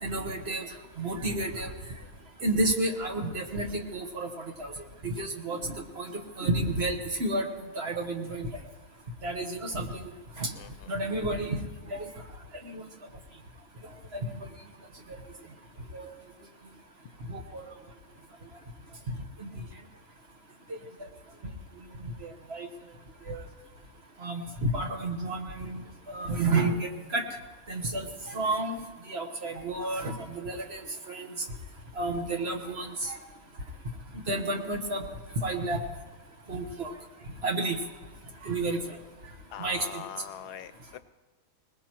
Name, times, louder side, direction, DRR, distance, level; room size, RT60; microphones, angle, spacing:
voice 1, 0.0-0.7 1.0-1.7 2.4-4.3 4.6-4.7 5.0-6.1 6.4-8.5 9.2-10.1 10.4-10.5 10.9-11.6 11.9-12.1 12.6-12.8 14.1-14.3 15.9-16.1 17.3-17.6 19.4-19.5 22.2-22.7 23.3-23.4 24.2-25.8 26.1-27.2 27.7-28.8 29.1-31.3 31.9-33.2 34.3-35.1 35.4-35.8 36.5-36.9 37.4-37.8 38.4-38.8 39.6-40.0, right 2 dB, 40° right, 3 dB, 1.4 m, -31 dB
voice 2, 10.5-10.9 37.4-37.5 39.5-41.0, left 10 dB, 85° left, 12 dB, 1.2 m, -42 dB
21.0 x 19.5 x 3.0 m, 1.3 s
omnidirectional pair, 1.7 m